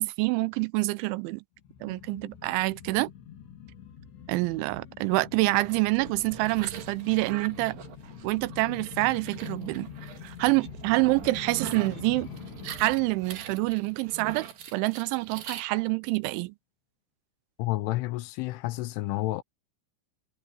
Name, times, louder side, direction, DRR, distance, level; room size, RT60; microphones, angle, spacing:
voice 1, 0.0-1.4 1.8-3.1 4.3-7.8 8.2-9.9 10.2-12.3 12.7-16.5, right 22 dB, 80° right, 2.9 m, -27 dB
sound 1, 1.6-14.8 15.1-15.2, left 8 dB, 65° left, 4.1 m, -45 dB
sound 2, 5.5-15.6, right 10 dB, 55° right, 3.2 m, -43 dB
voice 2, 17.6-19.4, left 18 dB, 80° left, 3.1 m, -30 dB
omnidirectional pair, 5.8 m